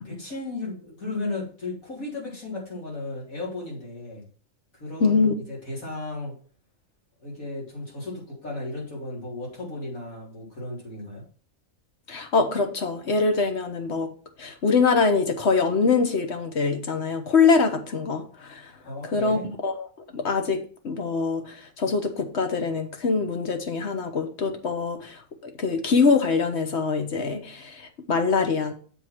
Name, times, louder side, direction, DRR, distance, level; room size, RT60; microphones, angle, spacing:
voice 1, 0.0-4.3 4.7-6.3 7.2-11.2 18.8-19.4, left 2 dB, 85° left, 4.2 m, -35 dB
voice 2, 5.0-5.3 12.1-14.1 14.4-18.7 19.1-19.9 20.1-28.7, left 4 dB, 55° left, 1.3 m, -24 dB
7.2 x 4.8 x 5.9 m
omnidirectional pair, 1.4 m